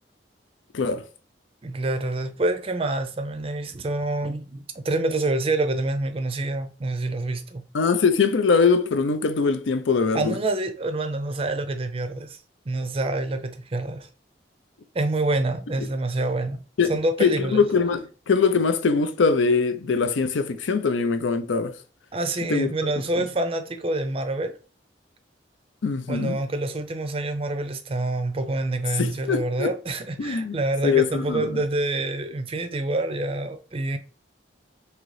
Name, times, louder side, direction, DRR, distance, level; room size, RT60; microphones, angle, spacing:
voice 1, 1.6-7.6 10.1-12.4 12.7-14.1 14.9-16.6 16.9-17.7 22.1-24.6 26.1-34.0, right 2 dB, 30° right, 0.5 m, -27 dB
voice 2, 7.7-10.4 16.8-16.9 17.2-21.8 22.5-22.7 25.8-26.4 29.0-29.7 30.2-31.6, left 5 dB, 90° left, 0.5 m, -22 dB
3.8 x 2.9 x 3.2 m
head